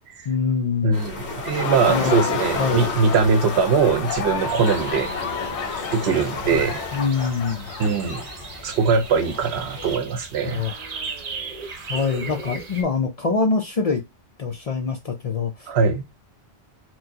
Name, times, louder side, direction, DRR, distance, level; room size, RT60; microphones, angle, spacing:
voice 1, 0.3-1.0 1.9-2.2 2.6-2.9 6.5-6.6 6.9-7.7 10.4-10.8 11.9-14.0 14.4-15.7, left 5 dB, 45° left, 0.5 m, -24 dB
voice 2, 0.8-5.1 5.9-6.8 7.8-8.3 8.6-10.6 15.7-16.0, right 5 dB, 75° right, 0.9 m, -21 dB
sound 1, 0.9-10.0, left 2 dB, 60° left, 1.0 m, -33 dB
Laughter, 1.3-8.9, left 6 dB, 85° left, 0.9 m, -31 dB
sound 2, 4.5-12.8, right 4 dB, 45° right, 0.6 m, -37 dB
4.5 x 2.1 x 2.7 m
omnidirectional pair, 1.1 m